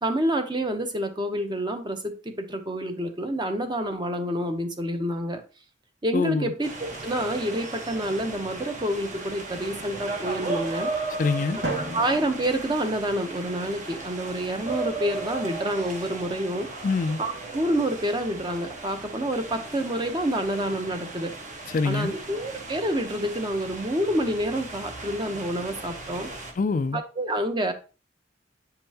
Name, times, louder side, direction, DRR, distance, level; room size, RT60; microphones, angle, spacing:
voice 1, 0.0-5.4 6.0-10.9 11.8-16.7 17.2-21.3 21.8-26.3 26.9-27.7, right 1 dB, 25° right, 0.9 m, -28 dB
voice 2, 6.1-6.5 11.2-11.6 16.8-17.2 21.7-22.1 26.6-27.0, left 4 dB, 45° left, 0.4 m, -25 dB
sound 1, 6.6-26.5, right 3 dB, 45° right, 1.2 m, -36 dB
Drum, 11.6-13.6, right 2 dB, 70° right, 2.0 m, -35 dB
8.5 x 5.2 x 2.9 m
head